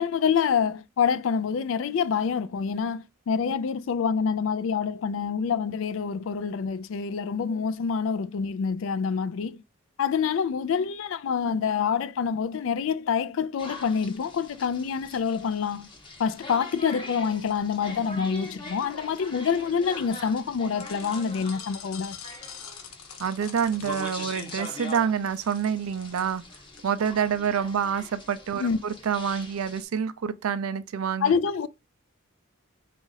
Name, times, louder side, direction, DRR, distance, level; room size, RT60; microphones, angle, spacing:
voice 1, 0.0-9.6 10.0-15.9 16.2-22.2 28.6-28.8 31.2-31.7, left 6 dB, 60° left, 0.3 m, -26 dB
sound 1, 13.6-29.8, left 2 dB, 25° left, 0.8 m, -42 dB
sound 2, 20.8-26.8, left 7 dB, 80° left, 0.7 m, -45 dB
voice 2, 23.2-26.4 26.8-31.3, right 7 dB, 80° right, 0.4 m, -27 dB
4.0 x 2.4 x 3.9 m
head